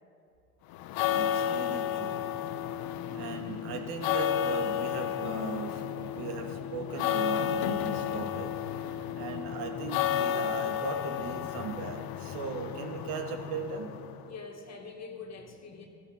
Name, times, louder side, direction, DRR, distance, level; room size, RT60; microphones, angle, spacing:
sound 1, 0.7-14.3, left 10 dB, 55° left, 0.9 m, -32 dB
voice 1, 1.1-2.3 3.1-8.6 8.8-13.9, right 5 dB, 65° right, 4 dB, 1.8 m, -38 dB
voice 2, 14.3-15.9, left 4 dB, 40° left, 2 dB, 2.0 m, -46 dB
16.0 x 12.0 x 4.2 m, 2.6 s
hypercardioid pair, 70°, 42 cm